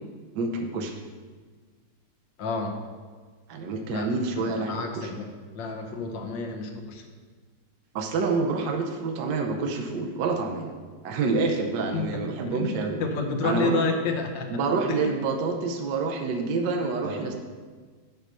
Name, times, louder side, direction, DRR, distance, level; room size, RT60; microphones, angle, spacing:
voice 1, 0.3-1.0 3.5-5.1 7.9-10.7 11.0-13.0 13.4-13.8 14.5-17.3, right 4 dB, 65° right, 4 dB, 1.2 m, -27 dB
voice 2, 2.4-2.8 3.9-4.1 4.4-5.3 5.5-7.0 11.9-12.1 12.5-12.7 13.0-14.5 14.9-15.1 17.0-17.3, left 3 dB, 65° left, 3 dB, 1.5 m, -30 dB
6.1 x 5.6 x 6.5 m, 1.5 s
omnidirectional pair, 2.3 m